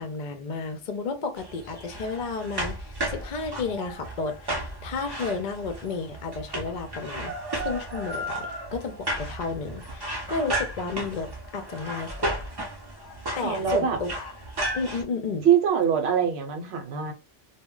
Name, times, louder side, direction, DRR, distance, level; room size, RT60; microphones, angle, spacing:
voice 1, 0.0-12.5 13.4-14.3 14.7-15.5, left 4 dB, 55° left, 0.5 m, -32 dB
sound 1, 1.4-15.0, right 1 dB, 35° right, 0.4 m, -34 dB
voice 2, 13.4-14.0 15.4-17.1, right 8 dB, 65° right, 0.9 m, -23 dB
2.1 x 2.1 x 3.7 m
omnidirectional pair, 1.2 m